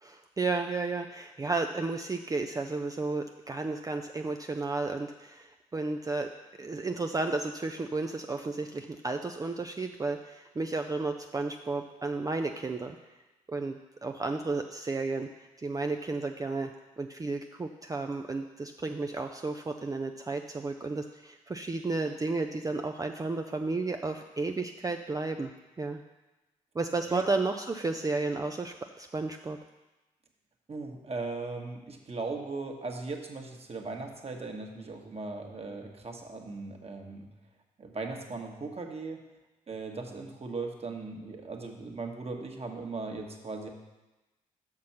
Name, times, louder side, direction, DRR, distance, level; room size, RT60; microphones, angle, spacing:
voice 1, 0.0-6.3 6.6-13.0 13.5-15.3 15.6-16.7 17.0-25.5 25.8-26.0 26.8-29.6, right 3 dB, 20° right, 5 dB, 0.5 m, -33 dB
voice 2, 30.7-37.3 37.8-39.2 39.7-43.7, right 3 dB, 35° right, 2 dB, 1.4 m, -38 dB
6.2 x 6.0 x 5.8 m, 1.1 s
hypercardioid pair, 45°, 17 cm